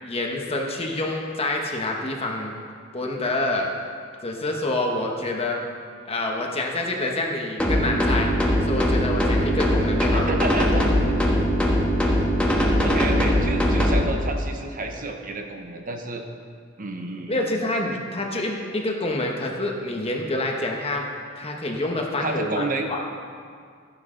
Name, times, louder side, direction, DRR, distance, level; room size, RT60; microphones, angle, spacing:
voice 1, 0.0-2.6 2.9-3.7 4.2-5.6 6.1-8.3 8.6-10.3 10.7-10.8 17.3-21.1 21.4-23.0, left 2 dB, 30° left, 1 dB, 1.2 m, -27 dB
sound 1, 7.6-14.0, equal, 5° left, 1.4 m, -21 dB
voice 2, 10.0-10.9 11.3-11.4 12.8-16.2 16.8-17.5 22.2-22.9, right 2 dB, 45° right, 4 dB, 0.9 m, -30 dB
13.5 x 10.0 x 3.9 m, 2.2 s
head